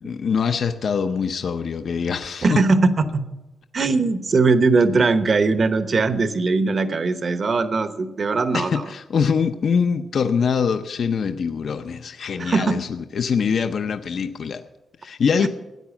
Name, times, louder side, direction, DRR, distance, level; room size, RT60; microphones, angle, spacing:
voice 1, 0.0-2.6 8.5-14.6 15.0-15.5, left 6 dB, 55° left, 8 dB, 0.6 m, -23 dB
voice 2, 2.4-3.2 3.7-8.9 12.4-12.8 15.4-15.5, right 3 dB, 40° right, 11 dB, 0.9 m, -20 dB
13.5 x 9.5 x 7.1 m, 1.0 s
wide cardioid pair, 145°, 0 cm